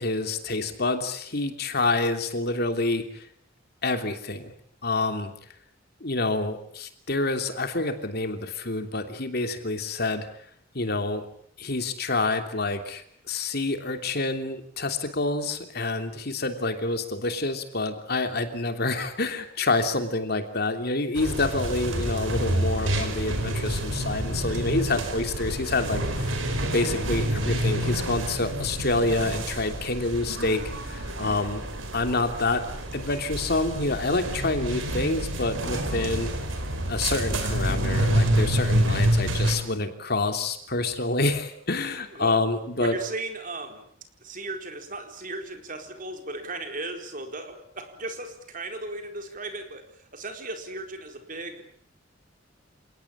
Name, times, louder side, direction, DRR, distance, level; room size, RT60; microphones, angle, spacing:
voice 1, 0.0-3.3 3.8-4.5 4.8-5.3 6.0-10.3 10.7-11.2 11.6-26.3 26.7-31.6 31.9-32.6 32.9-36.3 36.9-43.0, left 2 dB, 55° left, 7 dB, 3.1 m, -27 dB
sound 1, 21.2-39.6, right 1 dB, 90° right, 5.2 m, -28 dB
voice 2, 42.8-43.9 44.2-49.9 50.1-51.6, right 2 dB, 45° right, 5 dB, 4.4 m, -36 dB
29.0 x 18.5 x 8.6 m, 0.64 s
head